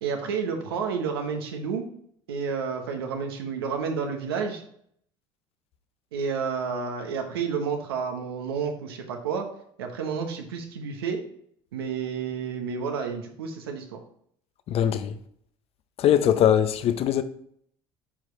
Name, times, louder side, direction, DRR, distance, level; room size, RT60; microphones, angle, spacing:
voice 1, 0.0-1.8 2.3-4.6 6.1-9.5 9.8-11.2 11.7-14.0, right 6 dB, 85° right, 1.1 m, -30 dB
voice 2, 14.7-15.1 16.0-17.2, left 10 dB, 55° left, 0.7 m, -21 dB
8.9 x 4.9 x 3.2 m
hypercardioid pair, 70°, 12 cm